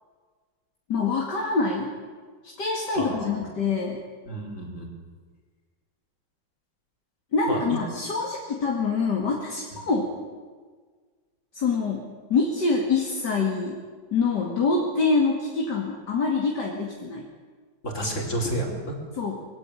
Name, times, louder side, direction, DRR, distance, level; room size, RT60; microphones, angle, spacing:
voice 1, 0.9-1.9 2.6-4.0 7.3-10.1 11.5-13.8 14.1-17.3 19.2-19.5, left 4 dB, 55° left, 0 dB, 2.9 m, -25 dB
voice 2, 2.9-3.4 4.3-4.9 7.5-7.8 17.8-18.9, right 1 dB, 35° left, 1 dB, 4.8 m, -30 dB
23.0 x 16.5 x 9.9 m, 1.5 s
omnidirectional pair, 2.2 m